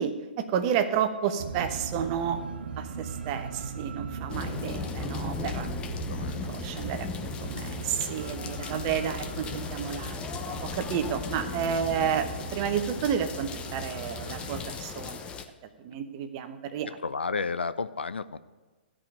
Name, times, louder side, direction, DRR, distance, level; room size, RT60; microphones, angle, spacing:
voice 1, 0.0-2.4 2.8-5.7 6.4-15.3 15.8-16.9, right 8 dB, 35° right, 8 dB, 1.0 m, -31 dB
sound 1, 1.4-14.6, right 5 dB, 60° right, 1.0 m, -39 dB
sound 2, 4.3-15.4, left 6 dB, 15° left, 0.8 m, -37 dB
voice 2, 5.6-6.4 17.0-18.5, left 4 dB, 75° left, 14 dB, 0.6 m, -33 dB
13.5 x 5.2 x 8.9 m, 1.3 s
figure-of-eight pair, 125°, 6 cm